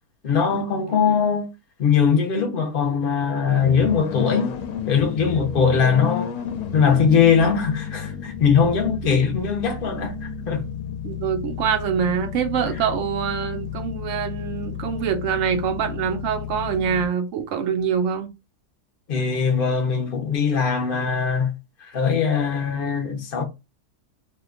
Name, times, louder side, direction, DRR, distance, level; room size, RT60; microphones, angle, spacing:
voice 1, 0.2-1.5 1.8-4.5 4.9-6.3 6.7-10.6 12.6-12.8 19.1-21.5 21.9-23.4, left 6 dB, 50° left, 0.6 m, -21 dB
sound 1, 3.6-17.1, left 8 dB, 75° left, 1.0 m, -32 dB
voice 2, 11.0-18.3, right 8 dB, 70° right, 0.7 m, -25 dB
2.8 x 2.2 x 3.5 m
omnidirectional pair, 1.7 m